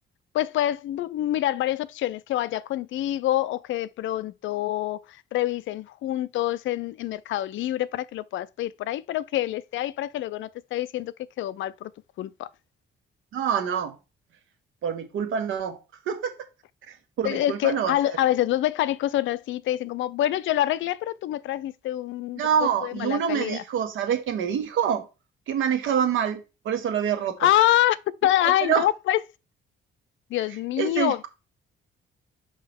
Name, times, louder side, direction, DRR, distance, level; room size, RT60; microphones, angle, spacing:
voice 1, 0.3-11.9 12.2-12.5 17.2-22.4 22.8-23.6 27.4-29.2 30.3-31.3, left 13 dB, 75° left, 0.5 m, -26 dB
voice 2, 13.3-14.0 14.8-16.3 16.9-18.0 22.4-25.1 25.5-26.4 26.6-27.5 28.4-28.9 30.8-31.3, right 8 dB, 80° right, 1.4 m, -26 dB
5.5 x 5.4 x 3.6 m
cardioid pair, 90°, 20 cm